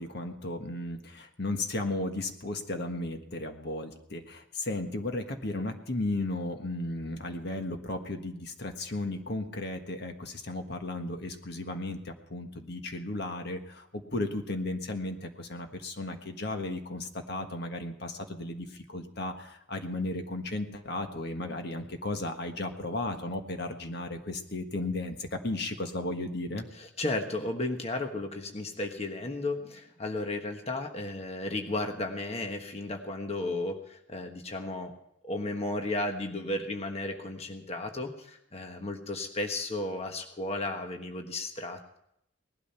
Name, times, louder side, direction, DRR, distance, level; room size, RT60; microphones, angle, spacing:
voice 1, 0.0-26.7, left 2 dB, 55° left, 5 dB, 1.5 m, -35 dB
voice 2, 26.7-34.9 35.2-42.0, left 2 dB, 30° left, 4 dB, 1.3 m, -34 dB
19.0 x 12.5 x 5.7 m, 0.77 s
head